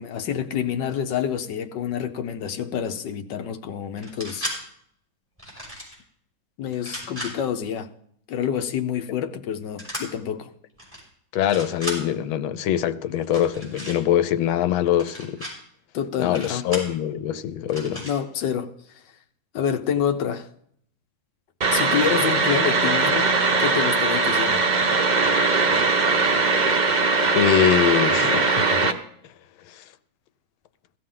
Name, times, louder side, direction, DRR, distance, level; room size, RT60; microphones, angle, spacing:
voice 1, 0.0-4.5 6.6-7.9 8.3-10.5 15.9-16.7 18.0-19.0 19.5-20.5 21.7-23.3 23.6-24.6, left 8 dB, 70° left, 1.3 m, -27 dB
sound 1, 4.0-4.6 5.4-5.9 6.7-7.3 9.8-10.0 10.8-11.0 11.3-12.0 13.2-14.0 14.9-15.5 16.3-16.9 17.7-18.1, equal, 5° right, 6.0 m, -34 dB
voice 2, 11.3-15.5 16.2-18.0 27.3-29.0 29.7-29.8, left 10 dB, 85° left, 1.5 m, -23 dB
sound 2, 21.6-28.9, right 4 dB, 65° right, 0.4 m, -20 dB
17.0 x 13.5 x 3.8 m
omnidirectional pair, 2.1 m